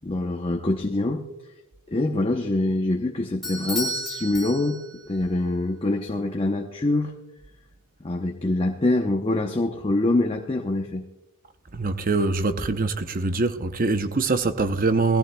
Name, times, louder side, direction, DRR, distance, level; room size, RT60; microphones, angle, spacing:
voice 1, 0.0-1.2 1.9-4.8 5.1-7.1 8.0-11.0, left 2 dB, 25° left, 0.8 m, -24 dB
Bell / Doorbell, 3.4-5.1, equal, ahead, 3.8 m, -32 dB
voice 2, 11.7-15.2, right 3 dB, 40° right, 0.7 m, -23 dB
19.5 x 14.5 x 2.2 m
head